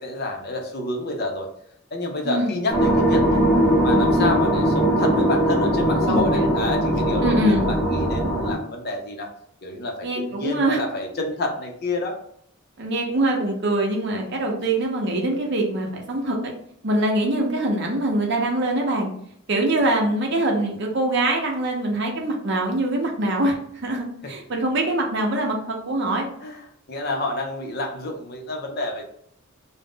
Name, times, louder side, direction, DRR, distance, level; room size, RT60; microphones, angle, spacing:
voice 1, 0.0-1.5 1.9-3.4 3.8-9.3 9.6-12.2 24.2-24.3 26.4-29.0, left 2 dB, 45° left, 2 dB, 0.5 m, -29 dB
sound 1, 2.7-8.5, right 1 dB, 5° left, 0.6 m, -20 dB
voice 2, 6.0-6.4 7.2-7.7 10.0-10.8 12.8-16.5 16.8-19.1 19.5-23.5 23.8-26.3, right 1 dB, 55° right, 1 dB, 0.6 m, -23 dB
2.5 x 2.0 x 3.4 m, 0.68 s
head